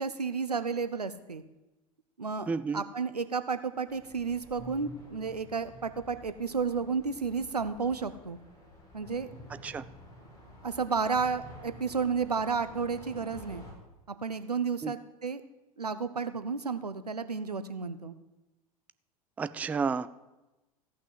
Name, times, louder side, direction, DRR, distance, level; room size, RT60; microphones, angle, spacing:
voice 1, 0.0-1.4 2.2-8.4 8.9-9.3 10.6-13.6 14.2-15.4 15.8-18.1, right 5 dB, 85° right, 12 dB, 0.7 m, -32 dB
voice 2, 2.5-2.8 9.6-9.8 14.8-14.9 19.4-20.1, right 5 dB, 10° right, 14 dB, 0.3 m, -31 dB
sound 1, 3.9-13.7, left 1 dB, 20° left, 4.5 m, -50 dB
15.0 x 5.9 x 7.9 m, 1.0 s
figure-of-eight pair, 85°, 20 cm